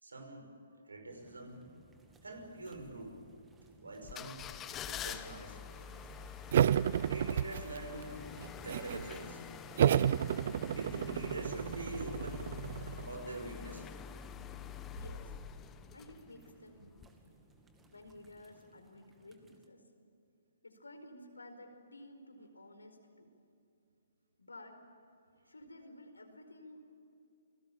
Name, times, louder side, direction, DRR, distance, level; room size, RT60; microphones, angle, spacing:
voice 1, 0.0-0.5 0.8-1.7 2.2-3.2 3.8-4.5 4.9-5.6 7.0-8.4 8.6-9.4 10.7-12.5 13.0-13.8, right 2 dB, 80° right, 5 dB, 5.8 m, -44 dB
sound 1, 1.1-19.7, right 2 dB, 10° right, 2.4 m, -60 dB
sound 2, 4.0-16.5 17.0-17.1, left 9 dB, 20° left, 1.1 m, -46 dB
sound 3, 6.5-8.0 8.4-9.1 9.8-13.1, right 10 dB, 50° right, 0.5 m, -31 dB
voice 2, 14.9-15.3 15.9-17.1 17.8-19.8 20.6-23.3 24.4-24.8 25.5-26.8, left 1 dB, 85° left, 6 dB, 4.6 m, -53 dB
29.0 x 20.5 x 8.9 m, 2.6 s
figure-of-eight pair, 135°, 0 cm